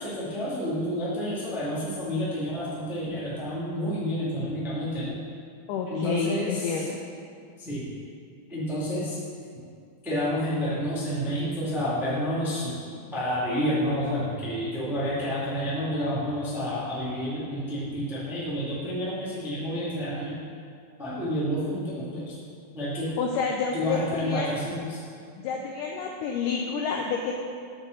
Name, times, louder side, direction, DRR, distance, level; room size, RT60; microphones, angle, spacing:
voice 1, 0.0-5.2 5.9-6.8 7.6-7.8 8.5-9.2 10.0-12.7 13.1-20.3 21.0-22.4 22.7-23.1 23.7-25.0, equal, ahead, -9 dB, 0.5 m, -29 dB
voice 2, 5.7-7.0 23.2-24.5 25.4-27.3, left 5 dB, 85° left, 1 dB, 1.8 m, -29 dB
7.4 x 4.7 x 6.4 m, 2.3 s
omnidirectional pair, 4.3 m